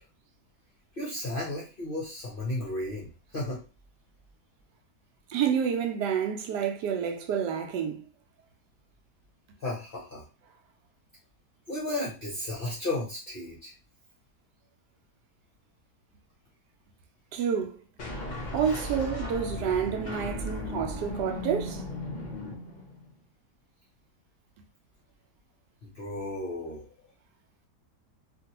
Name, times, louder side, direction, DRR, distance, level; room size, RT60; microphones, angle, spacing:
voice 1, 1.0-3.1 3.3-3.6 9.6-10.2 11.7-13.7 25.8-26.9, left 1 dB, 50° left, 0.7 m, -34 dB
voice 2, 5.3-8.1 17.3-17.8 18.5-21.8, right 7 dB, 80° right, 1.2 m, -29 dB
sound 1, 18.0-23.1, left 2 dB, 85° left, 0.4 m, -36 dB
3.0 x 2.5 x 2.8 m
omnidirectional pair, 1.8 m